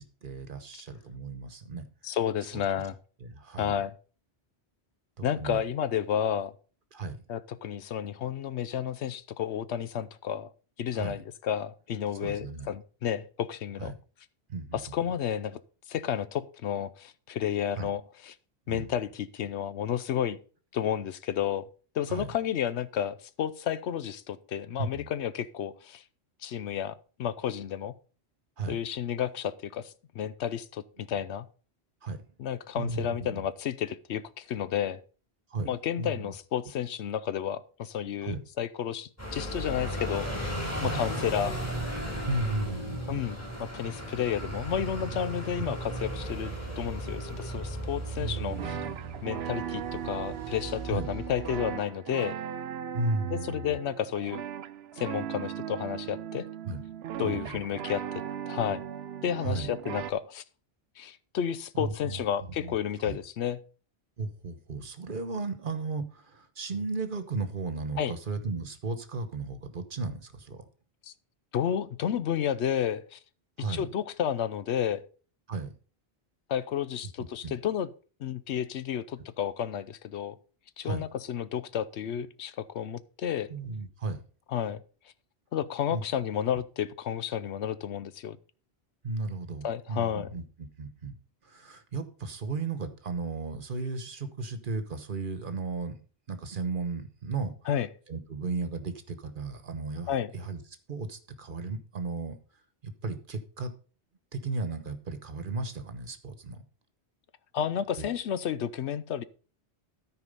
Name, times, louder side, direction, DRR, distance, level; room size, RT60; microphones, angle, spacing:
voice 1, 0.0-1.8 2.5-2.6 3.2-3.8 5.2-5.6 6.9-7.2 10.9-11.2 12.2-12.7 13.8-13.9 14.5-14.8 17.8-17.9 18.7-18.9 22.1-22.3 24.8-25.1 28.6-28.8 32.0-32.2 32.8-33.5 35.5-35.7 36.0-36.3 38.2-38.4 40.8-41.0 42.2-43.2 45.6-45.7 48.2-48.9 50.9-51.1 52.9-53.8 56.7-56.8 57.2-57.6 59.4-59.7 61.7-62.2 62.6-62.7 63.0-63.2 64.2-70.6 73.6-73.9 75.5-75.7 77.4-77.5 80.8-81.0 83.5-84.2 85.9-86.0 89.0-90.4 90.8-91.1 91.4-96.0 96.3-97.5 98.1-100.6 100.9-102.3 102.8-103.7 104.3-106.6 108.0-108.1, right 3 dB, 50° right, 1.2 m, -35 dB
voice 2, 2.0-3.0 3.6-3.9 5.2-6.5 7.3-10.5 10.8-13.9 14.7-15.6 15.9-18.3 18.7-20.4 20.7-21.7 21.9-26.0 26.4-27.9 28.7-31.5 32.4-35.0 35.6-40.5 40.8-41.6 43.1-48.8 49.2-52.4 53.3-54.4 55.0-56.5 57.2-58.8 59.2-60.4 61.0-63.6 68.0-68.1 71.0-71.1 71.5-73.2 73.6-75.0 76.5-77.9 78.2-80.4 80.8-83.5 84.5-84.8 85.5-88.4 89.6-90.3 97.7-97.9 100.1-100.3 107.5-109.2, left 9 dB, 80° left, 1.0 m, -31 dB
sound 1, 39.2-51.7, right 1 dB, 15° left, 4.4 m, -36 dB
sound 2, 48.5-60.1, right 9 dB, 70° right, 0.8 m, -38 dB
13.0 x 4.7 x 5.3 m
omnidirectional pair, 1.1 m